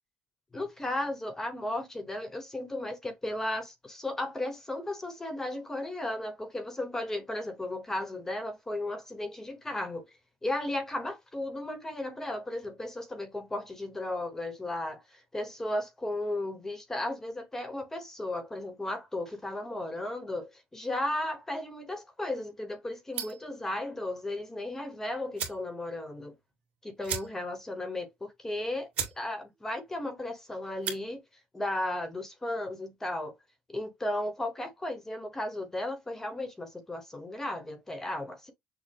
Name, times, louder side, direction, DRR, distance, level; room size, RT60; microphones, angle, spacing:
voice 1, 0.5-10.1 10.4-26.3 26.8-28.9 29.2-31.2 31.5-33.3 33.7-38.5, left 1 dB, 15° left, 1.1 m, -35 dB
sound 1, 23.1-23.5 24.9-25.0 25.3-25.7 26.1-26.2 26.4-26.5 27.0-27.6 28.0-28.1 28.6-28.7 28.9-29.2 29.5-29.9 30.7-31.0, right 8 dB, 50° right, 2.2 m, -36 dB
6.6 x 2.2 x 3.5 m
cardioid pair, 120°, 3 cm